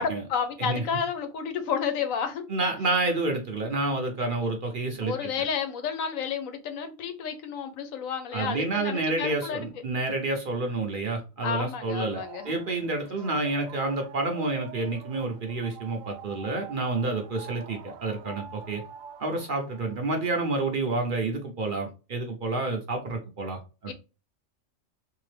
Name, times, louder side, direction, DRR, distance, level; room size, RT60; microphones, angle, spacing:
voice 1, 0.0-2.4 5.0-9.7 11.4-12.5 23.9-24.0, left 7 dB, 85° left, 8 dB, 1.1 m, -31 dB
voice 2, 2.5-5.3 8.3-18.8 19.2-23.9, right 2 dB, 50° right, 3 dB, 0.7 m, -29 dB
sound 1, 11.8-20.6, right 8 dB, 80° right, 1.0 m, -46 dB
3.4 x 2.8 x 3.2 m, 0.32 s
omnidirectional pair, 1.4 m